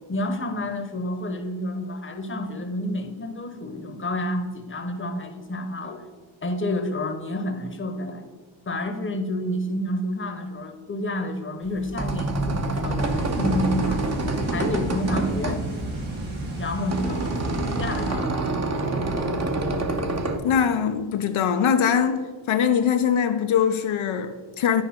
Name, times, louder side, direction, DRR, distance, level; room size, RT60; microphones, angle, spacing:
voice 1, 0.1-6.1 6.4-8.3 8.7-14.1 14.5-15.6 16.6-18.4, left 1 dB, 25° left, 0.9 m, -29 dB
sound 1, 11.7-20.4, right 2 dB, 35° right, 0.9 m, -27 dB
sound 2, 13.0-18.1, right 2 dB, 70° right, 2.1 m, -32 dB
voice 2, 20.4-24.8, left 8 dB, 75° left, 0.6 m, -22 dB
9.6 x 4.9 x 4.3 m
wide cardioid pair, 95°, 48 cm